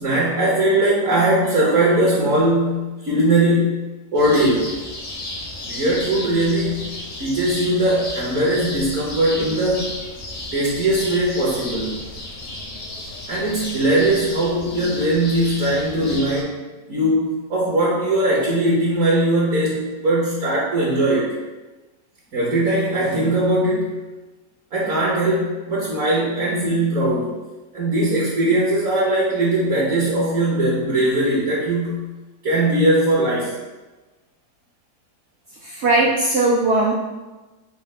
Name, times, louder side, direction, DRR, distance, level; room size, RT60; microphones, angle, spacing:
voice 1, 0.0-3.8 4.1-4.7 5.6-6.8 7.2-9.9 10.5-12.0 13.3-16.6 16.9-21.3 22.3-23.9 24.7-27.3 27.7-32.0 32.4-33.6, right 1 dB, 60° right, -6 dB, 1.3 m, -20 dB
sound 1, 4.1-16.4, left 1 dB, 65° left, 0.4 m, -33 dB
voice 2, 35.6-36.9, right 2 dB, 80° right, -2 dB, 0.6 m, -18 dB
4.2 x 2.5 x 4.8 m, 1.2 s
omnidirectional pair, 1.7 m